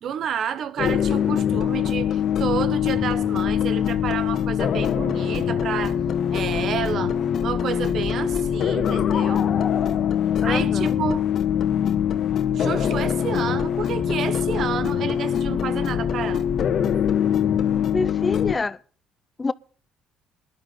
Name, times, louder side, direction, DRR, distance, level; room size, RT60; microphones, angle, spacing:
voice 1, 0.0-6.0 6.3-7.1 7.4-9.5 10.4-11.2 12.5-16.4, right 8 dB, 60° right, 1.1 m, -30 dB
sound 1, 0.8-18.5, left 9 dB, 60° left, 1.5 m, -23 dB
voice 2, 10.4-11.0 17.9-18.8 19.4-19.5, left 3 dB, 25° left, 0.6 m, -26 dB
19.0 x 11.5 x 3.8 m
supercardioid pair, 75°, 0 cm